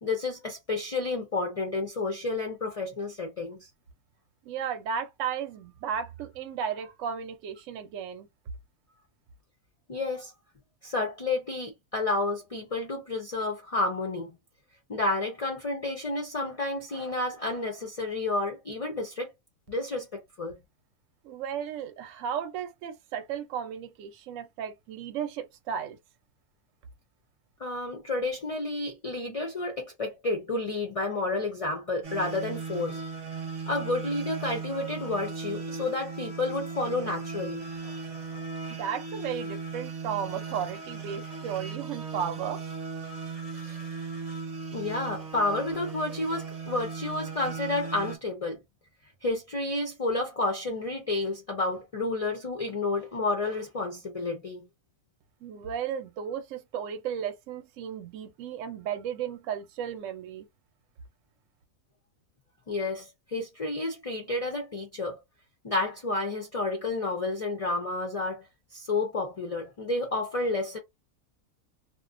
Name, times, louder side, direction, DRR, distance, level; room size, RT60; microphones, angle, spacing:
voice 1, 0.0-3.7 9.9-10.3 10.8-14.4 14.9-19.3 19.7-20.6 27.6-33.0 33.7-38.0 38.3-38.4 44.7-48.6 49.2-54.7 62.7-65.2 65.6-68.4 68.7-70.8, left 2 dB, 60° left, 0.3 m, -30 dB
voice 2, 4.5-8.3 21.2-26.0 38.7-42.6 55.4-60.5, right 8 dB, 70° right, 0.9 m, -34 dB
sound 1, 32.0-48.2, right 5 dB, 35° right, 0.7 m, -37 dB
2.5 x 2.2 x 2.4 m
omnidirectional pair, 1.5 m